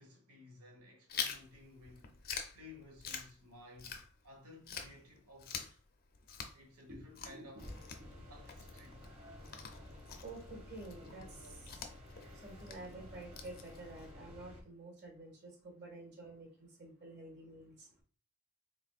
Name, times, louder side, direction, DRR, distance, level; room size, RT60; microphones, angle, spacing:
voice 1, 0.0-2.1 2.5-5.8 6.5-7.7 8.3-9.1 12.1-12.2, left 2 dB, 85° right, 1.4 m, -56 dB
Chewing mastication, 1.1-4.4 4.7-14.1, left 6 dB, 45° left, 0.5 m, -46 dB
voice 2, 6.9-7.7 8.0-8.3 10.2-11.8 12.3-18.0, right 2 dB, 50° right, 1.7 m, -50 dB
sound 1, 7.6-14.6, left 1 dB, 25° right, 1.1 m, -53 dB
4.1 x 3.7 x 2.4 m
head